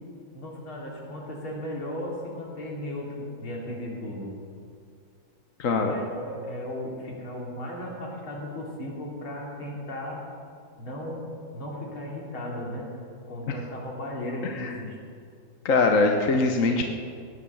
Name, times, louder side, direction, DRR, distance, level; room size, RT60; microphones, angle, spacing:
voice 1, 0.3-4.3 5.7-10.2 10.8-12.9 13.3-15.0, left 1 dB, 85° left, -2 dB, 3.8 m, -35 dB
voice 2, 5.6-5.9 14.4-14.7 15.6-16.8, left 3 dB, 50° left, 3 dB, 1.1 m, -22 dB
17.5 x 10.0 x 7.1 m, 2.3 s
omnidirectional pair, 2.2 m